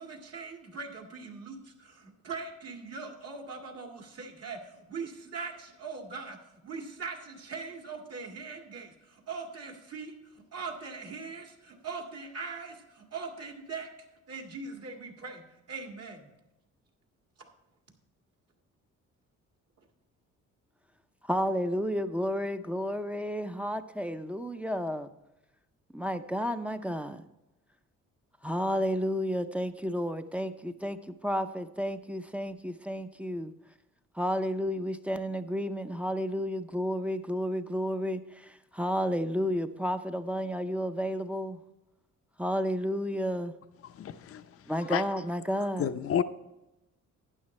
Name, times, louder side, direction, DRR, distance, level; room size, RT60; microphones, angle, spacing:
voice 1, 0.0-6.4 6.6-13.9 14.3-15.4 15.7-16.3 17.4-17.5, right 4 dB, 55° right, 3 dB, 2.0 m, -41 dB
voice 2, 21.2-25.1 25.9-27.2 28.4-33.5 34.1-41.6 42.4-43.5 44.7-45.9, equal, 5° right, 7 dB, 0.6 m, -31 dB
voice 3, 43.9-44.4 44.9-45.0 45.8-46.2, left 9 dB, 50° left, 12 dB, 0.6 m, -29 dB
12.0 x 9.4 x 3.2 m, 0.98 s
cardioid pair, 90°, 30 cm